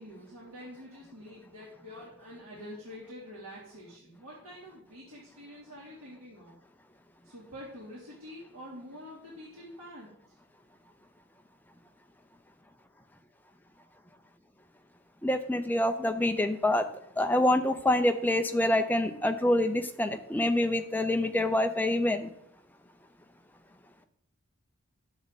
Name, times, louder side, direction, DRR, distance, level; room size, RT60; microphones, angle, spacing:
voice 1, 0.0-6.6 7.2-10.3, equal, 90° right, -8 dB, 3.3 m, -47 dB
voice 2, 15.2-16.9 17.2-22.3, left 1 dB, 10° left, 6 dB, 0.6 m, -26 dB
10.5 x 7.7 x 4.2 m, 0.75 s
head